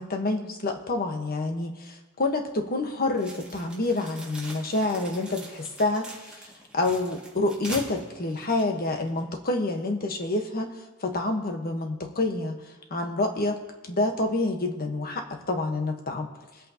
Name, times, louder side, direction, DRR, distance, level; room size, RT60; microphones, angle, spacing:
voice 1, 0.0-10.7 11.0-12.6 12.9-13.6 13.9-16.3, left 2 dB, 45° left, 3 dB, 1.2 m, -28 dB
sound 1, 3.2-9.3, right 2 dB, 5° right, 2.1 m, -43 dB
23.5 x 8.3 x 2.9 m, 1.2 s
head